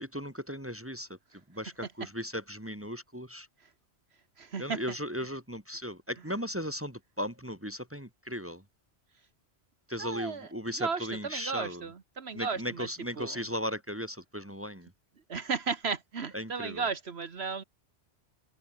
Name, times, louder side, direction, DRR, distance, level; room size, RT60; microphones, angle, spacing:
voice 1, 0.0-3.5 4.6-8.6 9.9-11.8 12.3-14.9 16.3-16.8, equal, 10° right, 3.1 m, -37 dB
voice 2, 4.4-4.8 10.0-10.5 10.8-12.9 13.2-13.4 15.3-17.6, right 5 dB, 65° right, 1.5 m, -34 dB
open air
omnidirectional pair, 1.2 m